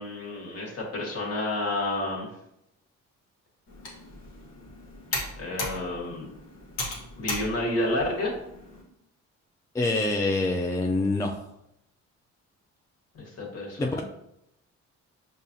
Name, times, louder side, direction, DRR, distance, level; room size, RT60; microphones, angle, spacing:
voice 1, 0.0-2.3 5.4-6.3 7.2-8.3 13.1-14.0, left 1 dB, 55° left, -2 dB, 1.5 m, -30 dB
Computer keyboard, 3.7-8.8, left 2 dB, 90° left, 1.1 m, -37 dB
voice 2, 9.7-11.3 13.8-14.0, left 2 dB, 10° left, 2 dB, 0.3 m, -25 dB
5.3 x 2.4 x 2.6 m, 0.80 s
cardioid pair, 90°, 30 cm